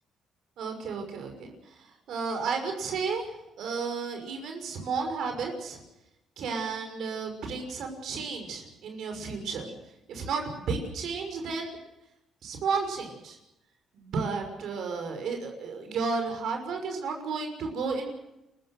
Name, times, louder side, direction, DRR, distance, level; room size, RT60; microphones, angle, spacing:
voice 1, 0.6-3.3 3.6-5.8 6.4-9.7 10.1-11.8 12.4-13.4 13.9-18.1, right 4 dB, 75° right, 4 dB, 5.9 m, -33 dB
29.0 x 14.5 x 7.8 m, 0.90 s
cardioid pair, 90°, 0 cm